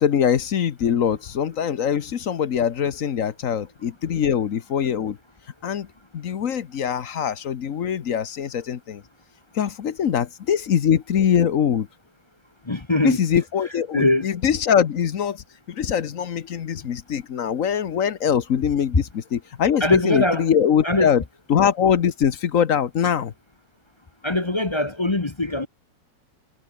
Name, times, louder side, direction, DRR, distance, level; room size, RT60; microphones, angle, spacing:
voice 1, 0.0-5.2 5.6-5.9 6.1-9.0 9.5-11.9 13.0-15.4 15.7-21.2 21.5-23.3, left 8 dB, 50° left, 1.2 m, -22 dB
voice 2, 12.6-13.2 13.9-14.3 19.8-20.5 20.8-21.1 24.2-25.7, left 2 dB, 25° left, 0.6 m, -22 dB
omnidirectional pair, 2.1 m